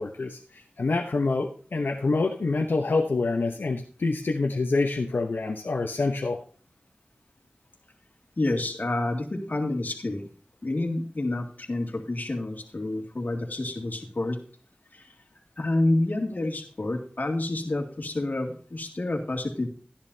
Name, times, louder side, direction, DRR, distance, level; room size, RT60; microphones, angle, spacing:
voice 1, 0.0-6.4, left 3 dB, 90° left, 1 dB, 0.9 m, -26 dB
voice 2, 8.4-10.3 10.6-14.4 14.9-15.1 15.6-19.7, left 2 dB, 55° left, 1 dB, 2.3 m, -28 dB
13.0 x 10.5 x 2.8 m, 0.43 s
wide cardioid pair, 45°, 3 cm